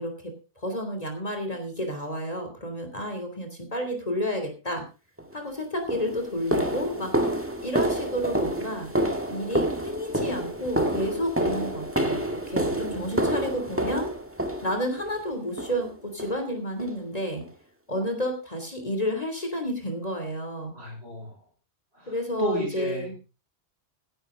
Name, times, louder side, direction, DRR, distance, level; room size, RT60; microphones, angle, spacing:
voice 1, 0.0-4.8 5.3-7.3 7.6-8.9 9.3-14.1 14.6-17.4 17.9-20.7 22.1-23.1, equal, 35° left, 5 dB, 3.2 m, -31 dB
sound 1, 5.2-5.3 5.9-15.1 15.6-15.9 16.2-16.4 16.8-17.0 17.4-17.5 18.0-18.1, right 1 dB, 10° right, 1.7 m, -28 dB
voice 2, 20.7-21.4 21.9-23.2, right 2 dB, 65° right, 0 dB, 6.5 m, -34 dB
16.0 x 11.0 x 3.8 m, 0.31 s
omnidirectional pair, 1.1 m